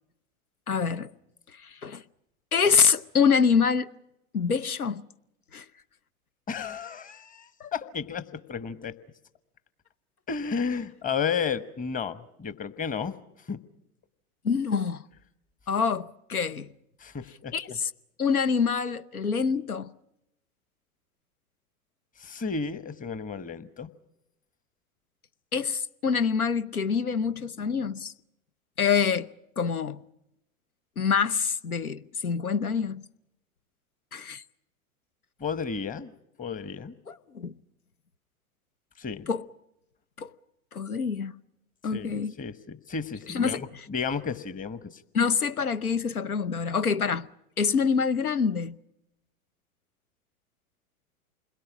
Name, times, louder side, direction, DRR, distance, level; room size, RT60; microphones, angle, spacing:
voice 1, 0.7-1.1 1.6-2.0 2.5-3.9 4.3-5.1 5.5-5.7 7.6-7.7 14.4-15.0 15.7-16.7 17.5-17.9 18.2-19.9 25.5-28.1 28.8-29.3 29.6-30.0 31.0-33.0 34.1-34.4 37.1-37.5 39.3-39.4 40.2-40.3 40.7-41.3 41.8-42.3 43.3-43.6 45.1-47.3 47.6-48.8, left 6 dB, 90° left, 0.9 m, -26 dB
voice 2, 6.5-9.0 10.3-13.2 13.5-13.6 17.0-17.8 22.2-23.9 35.4-36.1 36.4-36.9 39.0-39.3 41.9-45.0, left 6 dB, 20° left, 1.1 m, -33 dB
28.5 x 22.0 x 6.1 m
figure-of-eight pair, 95°, 42 cm